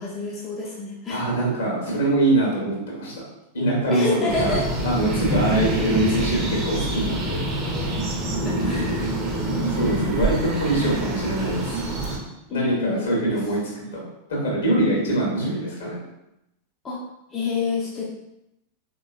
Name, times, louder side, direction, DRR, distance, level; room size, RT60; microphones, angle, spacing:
voice 1, 0.0-1.2 3.9-4.7 8.4-9.1 12.5-13.4 13.8-13.9 16.8-17.0 17.3-18.1, left 4 dB, 25° left, -5 dB, 0.6 m, -28 dB
voice 2, 1.1-3.2 3.5-4.6 4.8-7.4 9.6-11.8 12.5-14.0 14.3-16.0, right 1 dB, 65° left, -4 dB, 1.3 m, -23 dB
sound 1, 4.3-12.2, right 1 dB, 30° right, 0.7 m, -26 dB
3.6 x 2.9 x 2.5 m, 0.88 s
figure-of-eight pair, 90°, 0 cm